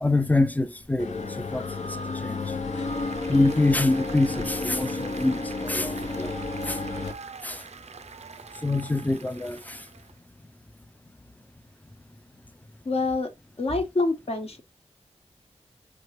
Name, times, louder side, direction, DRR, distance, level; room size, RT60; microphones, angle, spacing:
voice 1, 0.0-1.6 2.2-2.4 3.3-6.3 6.7-6.8 7.4-7.6 8.6-9.8, left 2 dB, 15° left, 0.4 m, -25 dB
sound 1, 1.0-7.1, left 3 dB, 80° left, 0.8 m, -32 dB
Applause, 2.6-10.2, right 5 dB, 70° right, 0.4 m, -43 dB
voice 2, 12.8-13.3 13.6-14.6, left 3 dB, 60° left, 1.1 m, -26 dB
4.6 x 2.8 x 3.1 m
wide cardioid pair, 80°, 12 cm